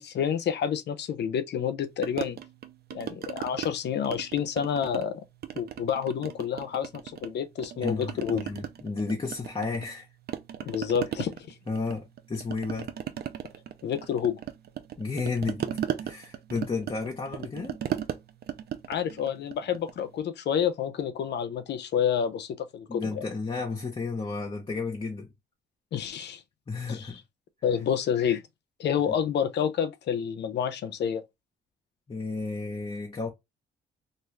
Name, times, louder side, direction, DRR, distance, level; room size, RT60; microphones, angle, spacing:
voice 1, 0.0-2.4 2.9-5.2 5.6-8.5 10.6-11.5 13.8-14.4 18.9-23.2 25.9-26.4 26.9-27.1 27.6-28.4 28.8-31.2, left 8 dB, 60° left, 0.5 m, -29 dB
sound 1, 2.0-3.7 4.0-5.1 5.4-7.3 7.6-10.0 10.3-20.1, right 10 dB, 55° right, 0.5 m, -37 dB
voice 2, 7.8-10.1 11.7-12.9 15.0-17.8 22.9-25.3 26.7-27.2 32.1-33.3, left 4 dB, 25° left, 0.7 m, -32 dB
2.5 x 2.3 x 3.1 m
cardioid pair, 90°, 20 cm